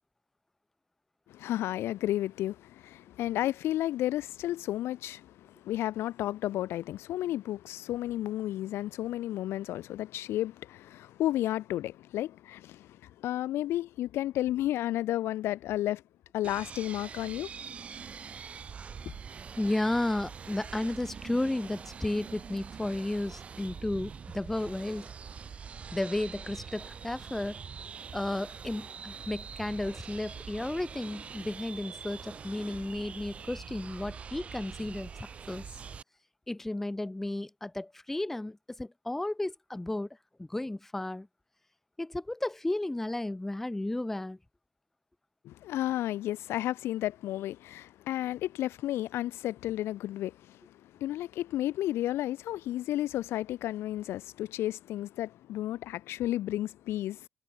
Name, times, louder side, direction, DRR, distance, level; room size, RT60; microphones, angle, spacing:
voice 1, 1.3-16.0 16.3-17.5 45.4-57.3, left 14 dB, 80° left, 1.0 m, -32 dB
sound 1, 16.4-36.0, right 6 dB, 30° right, 1.5 m, -44 dB
voice 2, 19.6-25.1 25.9-27.6 28.1-35.1 35.5-35.7 36.5-40.1 40.4-41.3 42.0-44.4, left 1 dB, 5° left, 1.1 m, -33 dB
cardioid pair, 180°, 4 cm